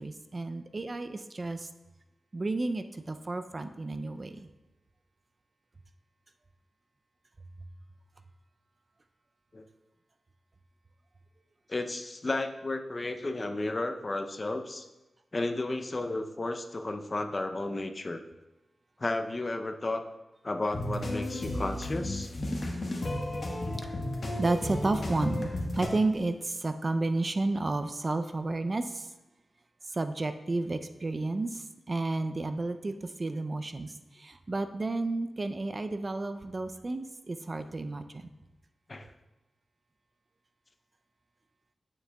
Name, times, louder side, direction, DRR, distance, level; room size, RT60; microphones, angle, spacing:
voice 1, 0.0-1.7 2.3-4.5 24.4-29.1 29.9-32.9 33.2-38.2, right 2 dB, 40° right, 9 dB, 0.4 m, -32 dB
voice 2, 11.7-14.9 15.3-18.2 19.0-20.1 20.4-22.3 38.9-39.1, left 2 dB, 35° left, 7 dB, 0.5 m, -33 dB
sound 1, 20.7-25.9, left 1 dB, 50° left, 1.3 m, -33 dB
8.9 x 7.0 x 2.3 m, 1.0 s
cardioid pair, 65°, 0 cm